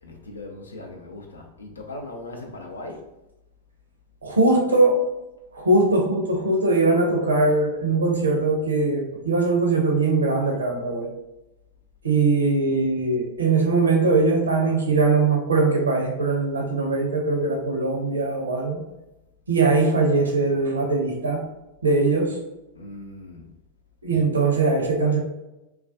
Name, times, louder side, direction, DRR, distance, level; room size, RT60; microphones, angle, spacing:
voice 1, 0.0-3.1 22.7-23.5, left 2 dB, 75° left, 2 dB, 0.4 m, -39 dB
voice 2, 4.2-5.1 5.5-11.1 12.0-18.8 19.5-21.4 21.8-22.4 24.0-25.2, right 3 dB, 75° right, 0 dB, 0.5 m, -21 dB
2.3 x 2.2 x 2.4 m, 0.95 s
figure-of-eight pair, 90°, 0 cm